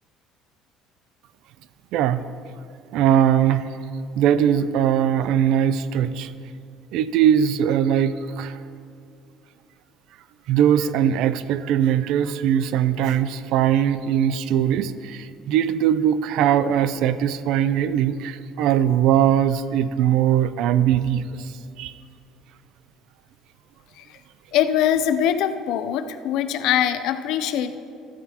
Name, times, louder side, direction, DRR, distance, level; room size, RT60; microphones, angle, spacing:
voice 1, 2.9-3.7 4.2-6.3 6.9-8.5 10.5-21.2 21.8-21.9, right 9 dB, 65° right, 14 dB, 0.4 m, -20 dB
voice 2, 24.5-27.8, left 10 dB, 65° left, 11 dB, 0.5 m, -22 dB
14.0 x 9.4 x 2.9 m, 2.5 s
cardioid pair, 150°, 0 cm